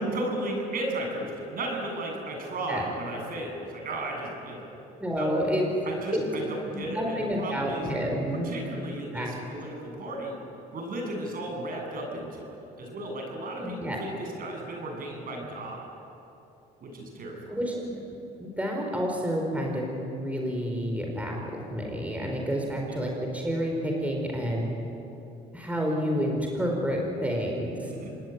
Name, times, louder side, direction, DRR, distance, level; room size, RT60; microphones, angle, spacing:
voice 1, 0.1-4.7 5.2-5.3 5.8-7.9 8.4-10.3 10.7-15.8 16.8-17.4 22.9-23.0 27.8-28.1, right 1 dB, 50° right, 1 dB, 7.9 m, -35 dB
voice 2, 5.0-5.6 6.1-6.3 6.7-8.5 9.1-9.3 13.6-14.0 17.5-24.7 25.5-27.9, equal, 10° right, 0 dB, 4.8 m, -29 dB
27.0 x 20.0 x 9.6 m, 2.9 s
cardioid pair, 100°, 18 cm